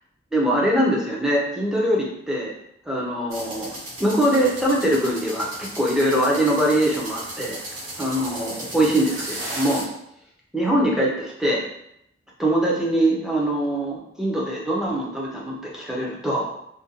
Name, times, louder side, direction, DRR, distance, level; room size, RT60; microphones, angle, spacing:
voice 1, 0.3-2.5 2.9-7.6 8.0-9.9 10.5-11.6 12.4-16.5, right 1 dB, 5° right, -4 dB, 0.4 m, -22 dB
sound 1, 3.3-9.8, right 1 dB, 90° right, 0.8 m, -35 dB
2.5 x 2.2 x 2.7 m, 0.76 s
head